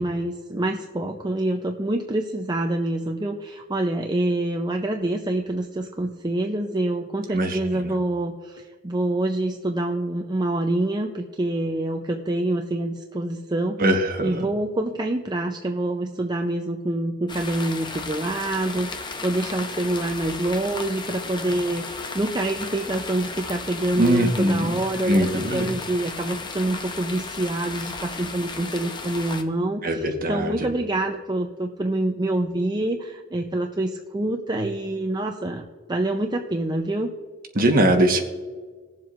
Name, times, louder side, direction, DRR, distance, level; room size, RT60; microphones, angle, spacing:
voice 1, 0.0-13.8 14.2-37.1, right 1 dB, 20° right, 3 dB, 0.5 m, -26 dB
voice 2, 7.3-7.9 13.8-14.5 24.0-24.8 25.0-25.7 29.8-30.7 37.5-38.2, right 1 dB, 40° right, 4 dB, 1.3 m, -21 dB
sound 1, 17.3-29.4, left 4 dB, 20° left, 0.7 m, -35 dB
20.5 x 7.4 x 2.5 m, 1.5 s
head